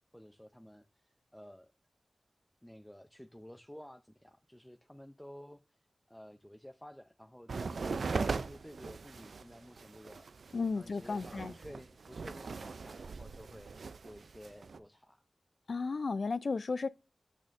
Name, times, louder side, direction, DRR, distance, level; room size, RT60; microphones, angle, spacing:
voice 1, 0.1-1.7 2.6-13.8 14.0-15.2, equal, 5° left, 0.5 m, -53 dB
sound 1, 7.5-14.8, right 4 dB, 85° right, 0.4 m, -40 dB
voice 2, 10.5-11.5 15.7-16.9, left 4 dB, 70° left, 0.4 m, -34 dB
8.4 x 6.3 x 2.5 m
wide cardioid pair, 85°, 0 cm